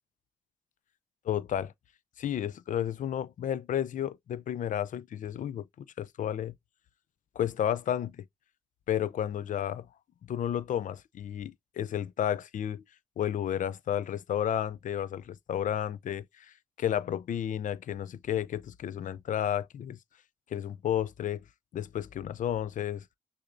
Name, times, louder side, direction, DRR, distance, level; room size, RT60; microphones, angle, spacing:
voice 1, 1.2-1.7 2.2-6.5 7.4-8.2 8.9-9.9 10.3-12.8 13.2-20.0 20.5-21.4 21.7-23.0, left 10 dB, 65° left, 0.4 m, -32 dB
6.4 x 2.6 x 2.5 m
cardioid pair, 65°, 14 cm